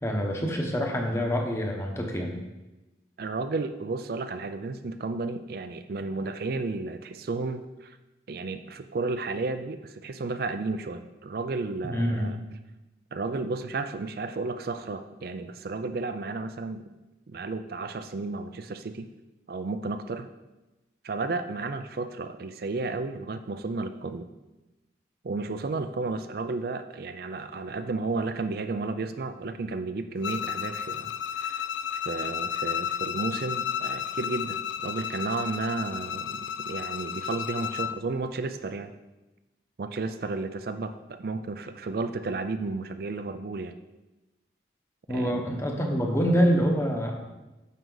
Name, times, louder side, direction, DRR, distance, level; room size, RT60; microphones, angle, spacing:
voice 1, 0.0-2.3 11.8-12.3 45.1-47.2, equal, 15° left, 2 dB, 1.0 m, -26 dB
voice 2, 3.2-8.0 8.3-12.4 13.1-16.8 17.3-19.1 19.5-20.3 21.0-24.3 25.2-31.7 31.9-38.9 39.8-43.7 45.1-45.4, right 3 dB, 55° right, 9 dB, 0.4 m, -33 dB
Bowed string instrument, 30.2-38.0, left 9 dB, 90° left, 0.4 m, -32 dB
9.2 x 6.5 x 3.9 m, 1.1 s
head